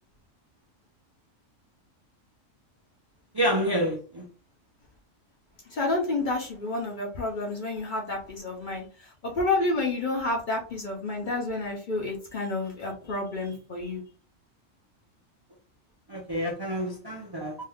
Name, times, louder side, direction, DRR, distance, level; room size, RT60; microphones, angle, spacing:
voice 1, 3.3-4.2 16.1-17.6, equal, 35° right, -2 dB, 0.3 m, -28 dB
voice 2, 5.7-14.0, left 2 dB, 50° left, 0 dB, 0.7 m, -30 dB
2.7 x 2.3 x 3.4 m, 0.37 s
omnidirectional pair, 1.4 m